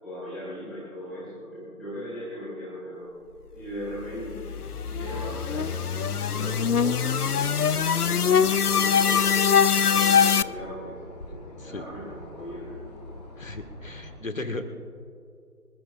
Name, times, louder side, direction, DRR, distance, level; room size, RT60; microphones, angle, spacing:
voice 1, 0.0-3.1 3.5-4.5 4.8-9.3 9.8-11.0 11.2-12.8, equal, ahead, -12 dB, 2.6 m, -38 dB
sound 1, 4.0-10.4, left 7 dB, 75° left, 0.6 m, -23 dB
sound 2, 4.5-14.2, left 1 dB, 25° left, 1.9 m, -44 dB
voice 2, 13.4-14.7, left 2 dB, 60° left, 7 dB, 1.7 m, -35 dB
26.0 x 15.0 x 2.5 m, 2.5 s
figure-of-eight pair, 160°, 46 cm